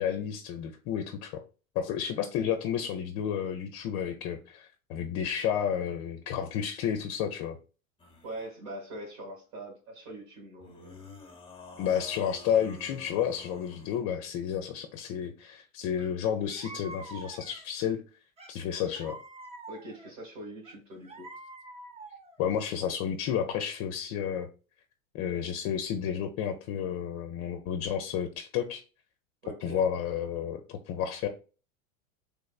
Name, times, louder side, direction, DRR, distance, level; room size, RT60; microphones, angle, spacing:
voice 1, 0.0-1.4 1.7-7.6 11.8-18.0 18.5-19.2 22.4-24.5 25.1-28.8 29.6-31.3, left 8 dB, 40° left, 0.6 m, -31 dB
sound 1, 8.0-8.5 10.6-14.1, left 3 dB, 10° left, 0.8 m, -49 dB
voice 2, 8.2-11.0 19.7-21.3 29.4-29.8, right 1 dB, 60° right, 1.9 m, -43 dB
sound 2, 16.0-16.1 16.4-17.8 18.4-20.1 20.6-22.4, right 2 dB, 15° right, 0.6 m, -46 dB
3.4 x 3.1 x 2.3 m
hypercardioid pair, 105°, 42 cm